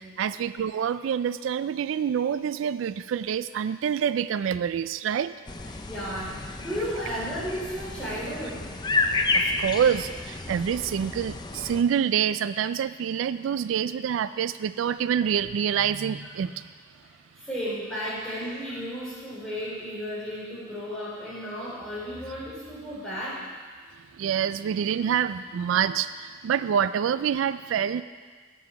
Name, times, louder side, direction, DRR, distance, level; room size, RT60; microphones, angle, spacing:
voice 1, 0.0-5.3 9.3-16.7 24.2-28.0, right 8 dB, 90° right, 15 dB, 0.3 m, -26 dB
sound 1, 5.5-11.8, left 3 dB, 20° left, 0.5 m, -30 dB
voice 2, 5.9-8.6 17.0-23.4, equal, 5° left, -9 dB, 3.8 m, -34 dB
9.6 x 7.9 x 5.9 m, 1.5 s
head